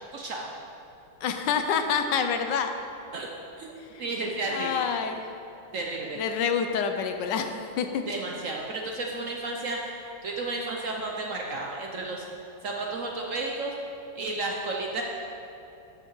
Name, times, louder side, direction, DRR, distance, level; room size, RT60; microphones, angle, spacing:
voice 1, 0.1-0.5 3.1-3.3 3.6-3.7 4.0-4.7 5.7-6.2 8.1-9.9 10.2-12.2 12.6-13.7 14.2-15.0, right 2 dB, 60° right, 0 dB, 0.9 m, -32 dB
voice 2, 1.2-2.7 3.9-4.0 4.5-5.2 6.1-8.0, left 6 dB, 75° left, 6 dB, 1.3 m, -27 dB
12.0 x 5.8 x 4.7 m, 2.9 s
omnidirectional pair, 2.0 m